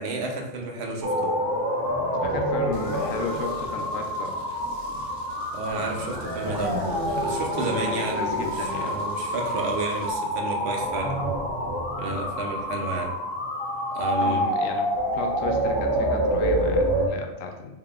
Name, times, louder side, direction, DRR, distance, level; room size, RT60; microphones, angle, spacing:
voice 1, 0.0-1.4 5.5-6.8 7.2-11.2 12.0-13.2 13.9-14.4, right 2 dB, 60° right, 2 dB, 0.9 m, -31 dB
sound 1, 1.0-17.1, equal, 35° right, 0.3 m, -27 dB
voice 2, 2.2-4.3 7.6-9.0 14.2-17.8, left 5 dB, 90° left, 3 dB, 1.0 m, -34 dB
sound 2, 2.7-10.1, equal, 85° right, 1.1 m, -47 dB
3.8 x 3.6 x 2.4 m, 0.96 s
omnidirectional pair, 1.3 m